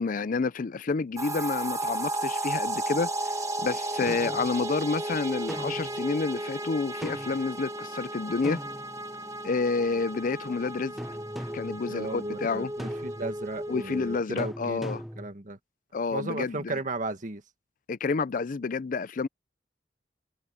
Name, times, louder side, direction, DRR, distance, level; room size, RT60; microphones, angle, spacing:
voice 1, 0.0-3.3 3.6-8.6 9.4-10.9 11.5-12.7 13.7-15.0 15.9-16.7 17.9-19.3, left 4 dB, 45° left, 0.5 m, -29 dB
sound 1, 1.2-14.2, right 1 dB, 20° right, 1.2 m, -34 dB
sound 2, 4.1-4.5 5.5-6.0 7.0-7.4 8.4-9.3 11.0-11.8 12.8-13.4 14.4-15.3, equal, ahead, 0.7 m, -39 dB
voice 2, 11.9-15.6 16.1-17.4, right 2 dB, 45° right, 1.8 m, -35 dB
head